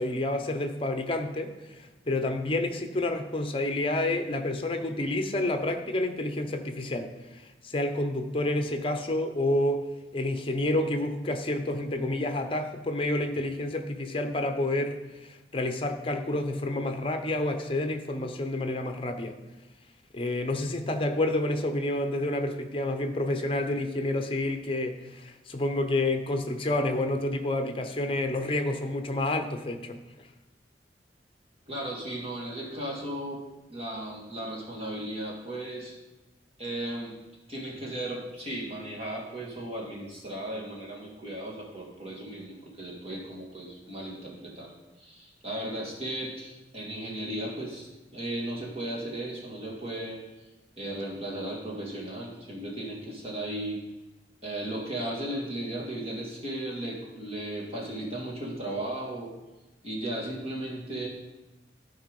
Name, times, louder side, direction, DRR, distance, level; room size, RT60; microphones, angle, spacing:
voice 1, 0.0-1.5 2.1-7.1 7.6-9.9 10.1-15.0 15.5-19.4 20.1-30.0, left 1 dB, 30° left, 6 dB, 0.8 m, -29 dB
voice 2, 31.7-33.4 33.7-35.9 36.6-37.1 37.5-44.7 45.0-50.2 50.8-53.8 54.4-59.3 59.8-61.1, right 1 dB, 35° right, -3 dB, 2.3 m, -36 dB
12.5 x 4.6 x 5.4 m, 1.1 s
head